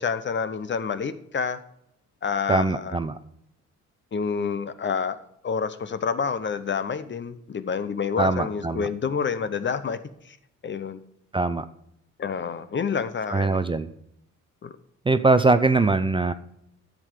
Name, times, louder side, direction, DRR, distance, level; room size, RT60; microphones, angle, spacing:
voice 1, 0.0-1.6 2.2-3.0 4.1-5.2 5.4-10.0 10.6-11.0 12.2-13.6 14.6-14.7, left 6 dB, 40° left, 12 dB, 0.8 m, -28 dB
voice 2, 2.5-3.2 8.2-8.9 11.3-11.7 13.3-13.9 15.1-16.3, right 3 dB, 15° right, 11 dB, 0.5 m, -22 dB
11.0 x 7.6 x 5.0 m, 0.76 s
cardioid pair, 90°, 30 cm